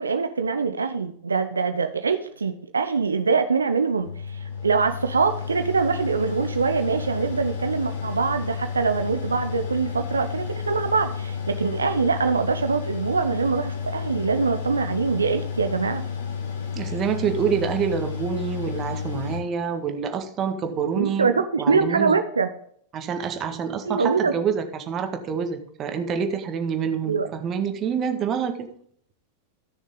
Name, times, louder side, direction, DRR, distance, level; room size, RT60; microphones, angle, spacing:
voice 1, 0.0-16.0 21.0-22.5 23.9-24.3 27.1-27.3, right 5 dB, 80° right, 8 dB, 0.7 m, -24 dB
Mechanical fan, 4.0-19.4, left 6 dB, 70° left, 2.4 m, -31 dB
voice 2, 16.8-22.2 22.9-28.7, right 7 dB, 30° right, 7 dB, 1.7 m, -27 dB
14.0 x 6.5 x 3.9 m, 0.64 s
figure-of-eight pair, 95°, 0 cm